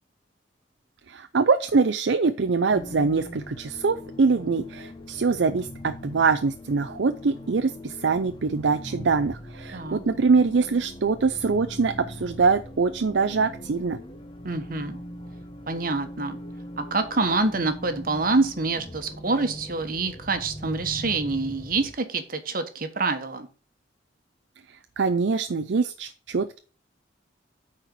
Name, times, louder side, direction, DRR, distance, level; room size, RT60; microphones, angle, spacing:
voice 1, 1.1-14.0 25.0-26.6, right 4 dB, 70° right, 9 dB, 0.5 m, -23 dB
sound 1, 2.7-21.9, equal, 25° left, 1.0 m, -41 dB
voice 2, 9.7-10.0 14.4-15.0 15.7-16.4 16.8-23.5, right 3 dB, 50° right, 8 dB, 1.2 m, -26 dB
9.0 x 4.4 x 6.1 m, 0.37 s
head